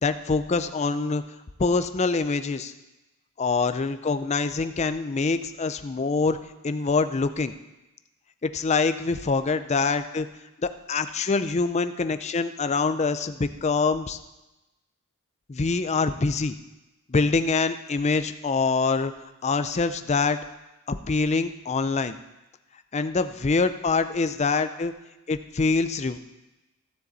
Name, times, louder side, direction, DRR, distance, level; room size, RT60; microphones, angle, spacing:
voice 1, 0.0-1.2 1.6-2.7 3.4-6.4 6.6-7.5 8.4-10.3 10.6-14.2 15.5-16.6 17.1-19.1 19.4-20.4 20.9-22.2 22.9-24.9 25.3-26.2, left 4 dB, 30° left, 11 dB, 0.4 m, -25 dB
14.5 x 7.0 x 4.0 m, 1.0 s
head